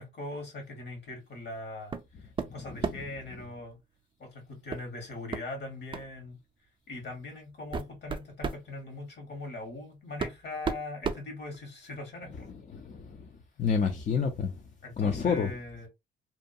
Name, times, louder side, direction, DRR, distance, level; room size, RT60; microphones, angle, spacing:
voice 1, 0.0-3.8 4.2-6.4 6.9-12.5 14.8-15.9, left 2 dB, 60° left, 1.5 m, -41 dB
sound 1, 1.9-2.1 2.4-3.2 4.7-4.9 5.3-5.4 5.9-6.1 6.9-7.0 7.5-8.7 9.7-9.8 10.2-11.9, right 5 dB, 25° right, 0.4 m, -34 dB
voice 2, 12.7-13.3 13.6-14.6 15.0-15.5, left 6 dB, 40° left, 0.5 m, -28 dB
2.8 x 2.2 x 2.6 m
cardioid pair, 90°, 20 cm